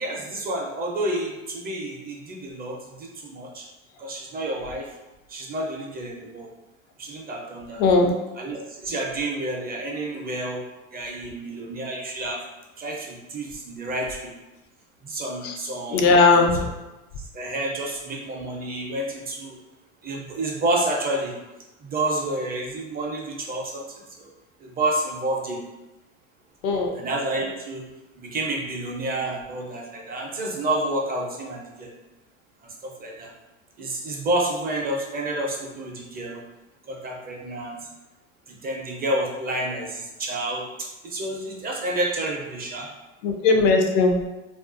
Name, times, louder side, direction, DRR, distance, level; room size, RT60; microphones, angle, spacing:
voice 1, 0.0-3.7 4.0-4.9 5.3-6.5 7.0-7.8 8.4-10.6 10.9-12.4 12.8-14.3 15.0-16.0 17.3-19.6 20.0-21.3 21.8-24.3 24.6-25.6 27.0-27.9 28.1-31.9 32.6-33.3 33.8-36.4 36.9-37.8 38.5-42.9, right 1 dB, 25° right, -1 dB, 0.5 m, -29 dB
voice 2, 7.8-8.1 15.4-15.6 15.9-16.7 26.6-26.9 43.2-44.2, left 3 dB, 65° left, 3 dB, 0.5 m, -18 dB
2.4 x 2.3 x 2.5 m, 1.0 s
hypercardioid pair, 95°, 38 cm